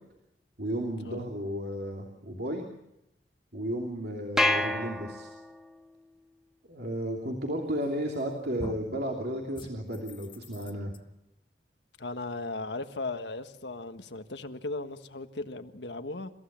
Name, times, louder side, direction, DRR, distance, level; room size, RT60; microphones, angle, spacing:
voice 1, 0.6-2.6 3.5-5.3 6.7-10.9, equal, 60° right, 3.0 m, -33 dB
sound 1, 4.4-5.7, left 1 dB, 5° right, 1.8 m, -28 dB
sound 2, 7.8-8.2 8.6-9.0 9.5-11.0, left 1 dB, 30° left, 1.2 m, -44 dB
voice 2, 12.0-16.3, left 2 dB, 80° left, 1.5 m, -37 dB
29.5 x 15.5 x 7.5 m
head